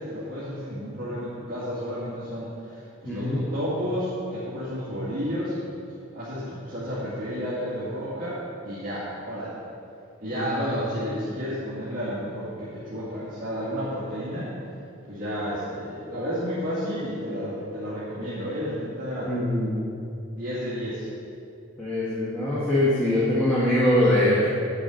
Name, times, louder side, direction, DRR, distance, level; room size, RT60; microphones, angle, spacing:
voice 1, 0.0-5.6 6.1-9.6 10.2-14.5 15.1-19.4 20.3-21.1, equal, 45° right, -12 dB, 2.2 m, -31 dB
voice 2, 3.0-3.4 10.3-10.4 19.3-19.8 21.8-24.5, left 1 dB, 5° left, -10 dB, 1.5 m, -22 dB
9.2 x 5.0 x 7.7 m, 2.6 s
head